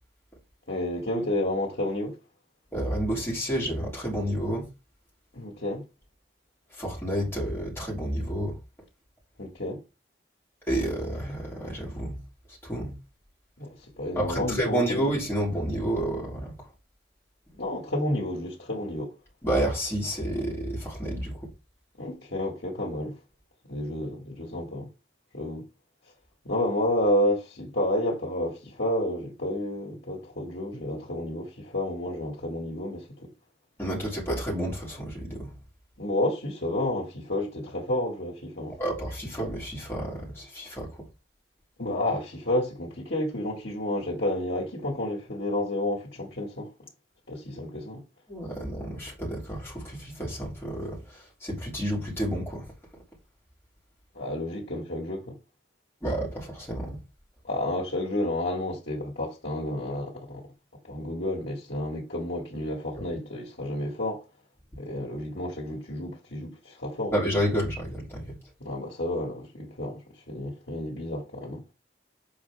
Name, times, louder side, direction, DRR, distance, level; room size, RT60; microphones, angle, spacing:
voice 1, 0.7-2.2 5.3-5.9 9.4-9.8 13.6-15.0 17.6-19.2 22.0-23.2 23.7-24.9 25.3-25.6 26.4-33.3 36.0-38.8 41.8-46.7 47.3-48.0 54.2-55.4 57.5-60.5 60.9-64.2 64.7-67.2 68.6-70.0 70.3-71.6, left 1 dB, 70° left, 2.2 m, -30 dB
voice 2, 2.7-4.7 6.7-8.6 10.7-12.2 12.6-12.9 14.1-16.5 19.4-21.5 33.8-35.5 38.8-41.0 48.3-52.7 56.0-57.0 67.1-68.4, right 1 dB, 15° left, 3.3 m, -30 dB
7.2 x 4.6 x 3.6 m
head